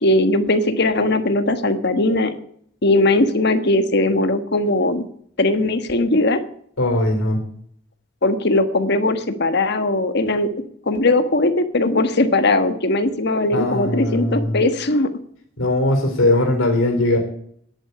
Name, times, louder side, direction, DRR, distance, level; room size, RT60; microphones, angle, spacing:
voice 1, 0.0-2.3 2.8-5.0 5.4-6.4 8.2-10.5 10.9-15.1, left 2 dB, 55° left, 9 dB, 1.4 m, -19 dB
voice 2, 6.8-7.4 13.5-14.6 15.6-17.2, left 1 dB, 90° left, 3 dB, 3.8 m, -19 dB
11.0 x 8.7 x 9.8 m, 0.65 s
head